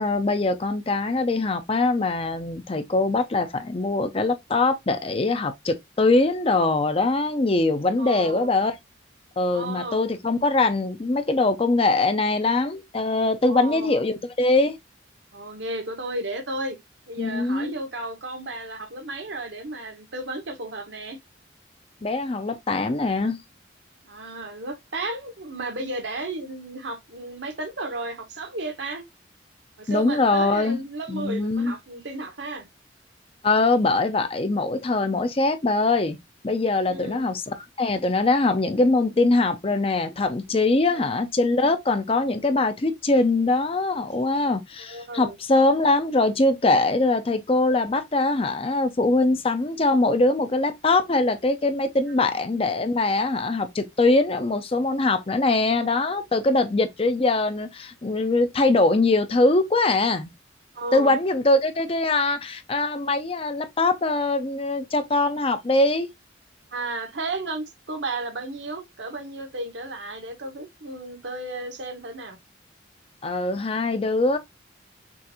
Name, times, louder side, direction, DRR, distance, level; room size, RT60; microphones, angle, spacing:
voice 1, 0.0-8.7 9.4-14.8 17.2-17.7 22.0-23.4 29.9-30.8 31.1-31.7 33.4-36.2 36.4-60.3 60.9-66.1 73.2-74.4, left 2 dB, 30° left, 0.6 m, -22 dB
voice 2, 8.0-8.5 9.5-10.1 13.4-14.0 15.3-16.8 17.1-21.2 24.0-29.0 29.8-32.7 36.9-37.3 40.9-41.1 44.8-45.4 52.2-52.4 60.7-61.2 66.7-72.4, right 2 dB, 70° right, 1.2 m, -34 dB
6.1 x 2.6 x 2.8 m
head